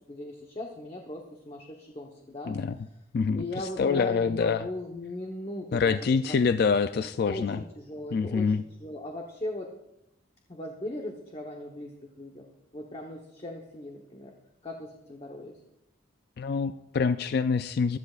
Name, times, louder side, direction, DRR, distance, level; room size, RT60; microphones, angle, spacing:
voice 1, 0.1-2.5 3.3-6.7 7.2-9.7 10.5-12.5 12.7-14.3 14.6-15.6, left 1 dB, 30° left, 0 dB, 1.0 m, -39 dB
voice 2, 2.5-2.8 3.1-4.7 5.7-7.6 8.1-8.6 16.4-18.0, left 5 dB, 50° left, 11 dB, 0.3 m, -26 dB
19.5 x 13.0 x 2.4 m, 0.87 s
head